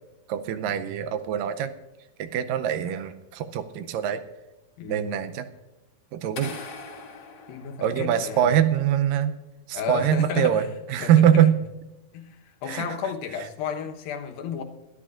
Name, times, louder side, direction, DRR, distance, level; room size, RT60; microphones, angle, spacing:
voice 1, 0.3-1.7 2.2-4.2 4.9-5.5 6.1-6.6 7.8-9.3 9.7-10.6 10.9-11.6 12.7-12.9, right 9 dB, 80° right, 11 dB, 2.2 m, -23 dB
voice 2, 4.8-5.1 7.5-8.5 9.7-11.5 12.1-14.6, left 7 dB, 90° left, 4 dB, 2.9 m, -33 dB
sound 1, 6.4-8.5, left 4 dB, 55° left, 2.6 m, -41 dB
22.0 x 12.0 x 2.5 m, 1.1 s
omnidirectional pair, 4.1 m